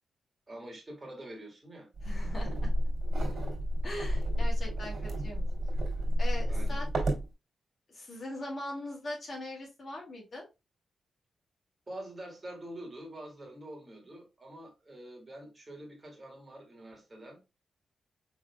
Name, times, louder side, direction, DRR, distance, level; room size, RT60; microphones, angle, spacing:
voice 1, 0.5-1.9 6.5-6.8 11.9-17.4, right 1 dB, 25° right, 2.2 m, -46 dB
voice 2, 2.0-2.7 3.8-5.5 6.2-6.9 7.9-10.4, left 1 dB, 45° left, 2.2 m, -41 dB
sound 1, 2.0-7.3, equal, 60° right, 2.3 m, -30 dB
5.4 x 3.7 x 2.3 m
cardioid pair, 95°, 0 cm